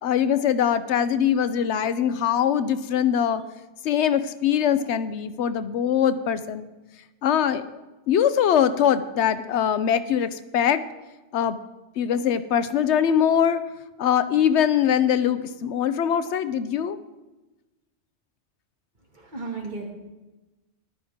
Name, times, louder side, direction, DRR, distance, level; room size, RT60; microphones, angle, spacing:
voice 1, 0.0-3.4 3.8-6.7 7.2-7.8 8.1-10.8 11.3-11.6 12.0-13.6 14.0-17.0, left 9 dB, 85° left, 13 dB, 0.9 m, -22 dB
voice 2, 19.1-19.9, right 3 dB, 45° right, -1 dB, 2.2 m, -34 dB
14.0 x 11.5 x 3.6 m, 1.1 s
omnidirectional pair, 1.1 m